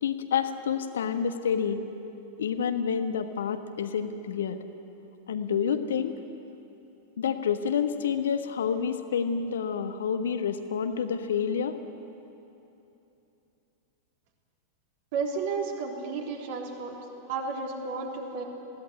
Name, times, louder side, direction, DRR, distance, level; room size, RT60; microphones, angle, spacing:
voice 1, 0.0-1.8 2.4-4.6 5.3-6.2 7.2-11.8, left 7 dB, 65° left, 9 dB, 1.3 m, -28 dB
voice 2, 15.1-17.0 17.3-18.4, right 4 dB, 50° right, 1 dB, 3.5 m, -32 dB
20.5 x 16.5 x 9.9 m, 2.9 s
figure-of-eight pair, 90°, 0 cm